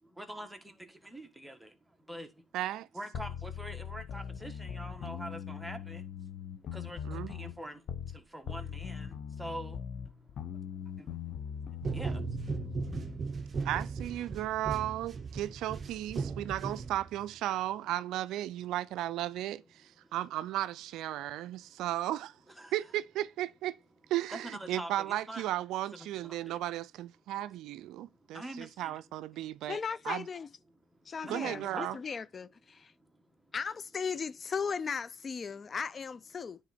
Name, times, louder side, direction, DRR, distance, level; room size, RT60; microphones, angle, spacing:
voice 1, 0.0-2.4 2.9-6.1 6.7-10.3 10.5-13.7 14.3-14.5 14.8-14.9 15.9-16.1 16.4-16.5 20.0-20.1 21.3-21.7 22.5-22.7 24.3-25.5 25.9-26.6 28.3-29.0 31.0-32.0 33.0-33.2, right 1 dB, 5° right, 1.4 m, -46 dB
voice 2, 2.5-2.9 7.0-7.3 13.6-22.4 22.7-23.8 24.1-29.8 30.1-30.3 31.3-32.0, right 14 dB, 75° right, 0.3 m, -35 dB
sound 1, 3.1-8.2 8.5-13.2, left 8 dB, 60° left, 1.0 m, -41 dB
sound 2, 11.8-17.3, right 4 dB, 40° right, 0.6 m, -37 dB
voice 3, 29.7-30.5 31.1-32.9 33.5-36.6, left 6 dB, 40° left, 0.3 m, -37 dB
9.6 x 3.6 x 4.2 m
supercardioid pair, 80°, 0 cm